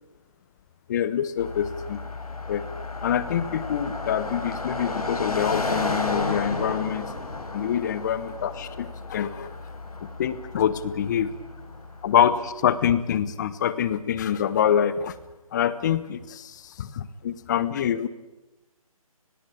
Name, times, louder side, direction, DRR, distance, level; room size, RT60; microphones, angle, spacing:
voice 1, 0.9-2.0 2.5-2.6 3.0-7.1 7.5-9.5 10.2-11.3 12.0-15.1 15.5-18.1, left 9 dB, 30° left, 15 dB, 1.3 m, -25 dB
Car passing by, 1.4-12.5, left 3 dB, 80° left, 5.9 m, -33 dB
29.5 x 20.0 x 8.7 m, 1.0 s
figure-of-eight pair, 155°, 19 cm